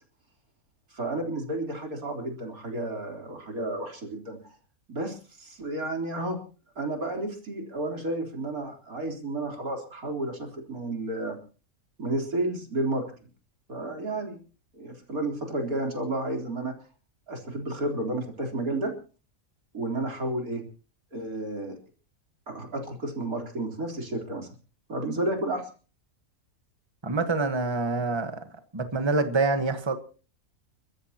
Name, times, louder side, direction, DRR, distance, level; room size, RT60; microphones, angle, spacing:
voice 1, 0.9-4.4 4.9-6.4 6.8-11.4 12.0-13.0 13.7-14.4 14.7-16.7 17.3-18.9 19.7-20.6 21.1-21.8 22.5-24.5 24.9-25.7, right 2 dB, 85° right, 4.3 m, -31 dB
voice 2, 27.0-28.4 28.7-30.0, right 3 dB, 20° right, 1.3 m, -26 dB
30.0 x 14.0 x 3.0 m
omnidirectional pair, 1.5 m